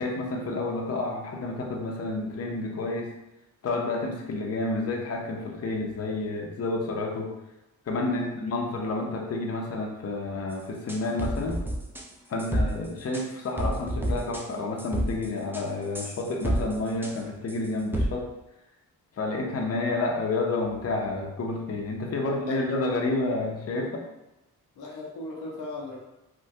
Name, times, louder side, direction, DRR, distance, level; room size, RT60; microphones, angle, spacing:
voice 1, 0.0-3.1 3.6-7.3 7.9-11.6 12.3-18.3 19.2-24.0, left 2 dB, 40° left, 0 dB, 0.6 m, -30 dB
sound 1, 10.9-12.0 12.4-12.7 13.1-13.2 13.6-14.4 14.8-15.3 15.5-15.6 15.9-16.7 17.0-17.1 17.5-17.6 17.9-18.1, equal, 5° right, 0.5 m, -28 dB
voice 2, 22.2-22.6 24.8-26.0, left 2 dB, 90° left, -3 dB, 0.8 m, -38 dB
3.4 x 2.2 x 2.7 m, 0.97 s
cardioid pair, 60°, 36 cm